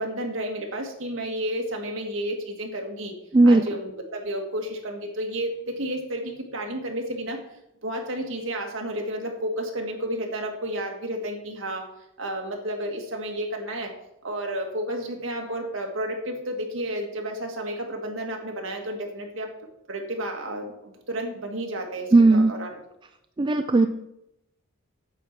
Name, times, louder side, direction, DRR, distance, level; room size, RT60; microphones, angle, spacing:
voice 1, 0.0-3.1 3.4-7.4 7.8-11.9 12.2-13.9 14.2-19.5 19.9-22.7, right 1 dB, 60° right, 2 dB, 1.7 m, -31 dB
voice 2, 22.1-22.5 23.4-23.9, right 2 dB, 20° right, 7 dB, 0.3 m, -16 dB
8.9 x 4.5 x 7.3 m, 0.83 s
head